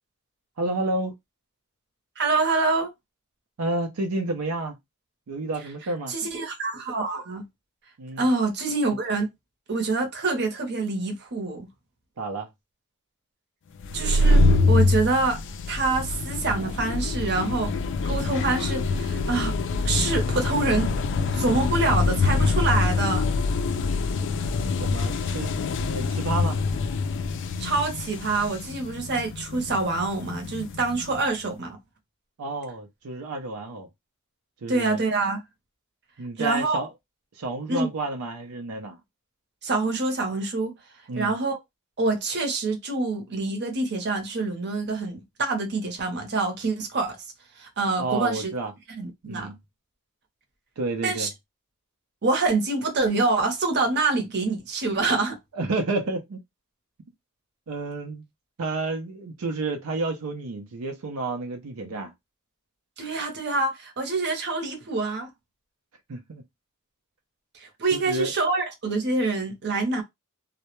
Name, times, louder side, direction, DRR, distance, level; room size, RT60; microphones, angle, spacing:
voice 1, 0.6-1.1 3.6-4.8 5.3-6.1 8.0-8.3 12.2-12.5 24.8-25.5 25.9-26.6 32.4-33.9 34.6-35.0 36.2-36.9 37.4-39.0 41.1-41.4 48.0-48.7 49.2-49.6 50.8-51.3 55.5-56.4 57.7-58.2 58.6-62.1 66.1-66.4 67.9-68.3, right 2 dB, 90° right, 0.5 m, -30 dB
voice 2, 2.2-2.9 6.1-7.5 8.2-9.3 9.7-11.7 13.9-15.4 15.7-17.7 18.1-19.5 19.8-20.9 21.3-23.3 27.6-31.8 34.7-35.4 36.4-36.8 37.7-37.9 39.6-40.7 41.2-41.6 42.0-47.2 47.6-48.5 49.0-49.5 51.0-51.3 52.2-55.4 63.0-65.3 67.6-70.0, right 3 dB, 50° right, 0.7 m, -26 dB
sound 1, 13.8-31.2, left 3 dB, 60° left, 0.3 m, -25 dB
2.2 x 2.0 x 2.9 m
head